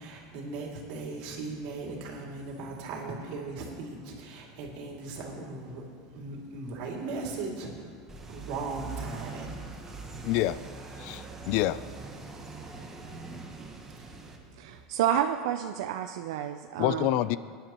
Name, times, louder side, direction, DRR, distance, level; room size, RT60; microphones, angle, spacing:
voice 1, 0.0-10.3 13.9-14.8, right 3 dB, 60° right, -1 dB, 2.5 m, -39 dB
sound 1, 8.1-14.4, right 4 dB, 15° right, 1.1 m, -42 dB
voice 2, 10.2-10.6 11.0-11.8 16.8-17.4, left 14 dB, 55° left, 16 dB, 0.3 m, -27 dB
voice 3, 14.6-17.1, right 10 dB, 80° right, 7 dB, 0.5 m, -29 dB
20.0 x 10.5 x 3.0 m, 2.3 s
supercardioid pair, 155°, 3 cm